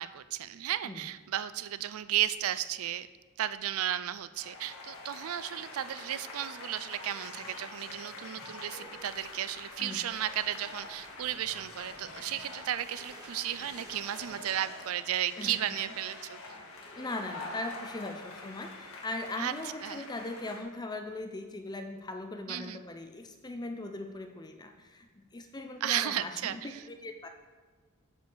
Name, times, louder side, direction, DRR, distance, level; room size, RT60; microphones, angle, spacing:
voice 1, 0.0-3.1 3.4-16.4 19.4-19.5 19.8-20.0 22.5-22.8 25.8-26.8, right 11 dB, 75° right, 14 dB, 0.4 m, -34 dB
sound 1, 4.3-20.6, left 3 dB, 75° left, 1.8 m, -46 dB
sound 2, 8.8-14.4, right 1 dB, 20° right, 1.4 m, -55 dB
voice 2, 17.0-27.3, left 2 dB, 20° left, 6 dB, 0.5 m, -39 dB
8.0 x 4.9 x 7.0 m, 1.4 s
head